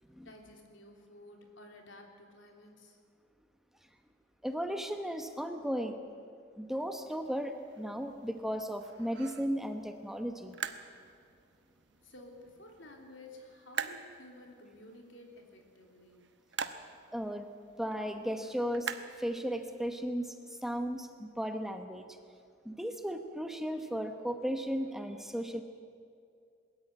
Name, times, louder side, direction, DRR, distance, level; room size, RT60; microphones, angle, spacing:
voice 1, 0.3-3.0 12.0-16.2, left 1 dB, 85° left, 2 dB, 3.3 m, -53 dB
voice 2, 4.4-6.0 6.6-10.6 17.1-17.5 17.8-22.2 22.6-25.6, equal, ahead, 6 dB, 1.0 m, -35 dB
sound 1, 6.7-19.9, right 6 dB, 65° right, 1.0 m, -46 dB
21.5 x 13.5 x 9.4 m, 2.4 s
head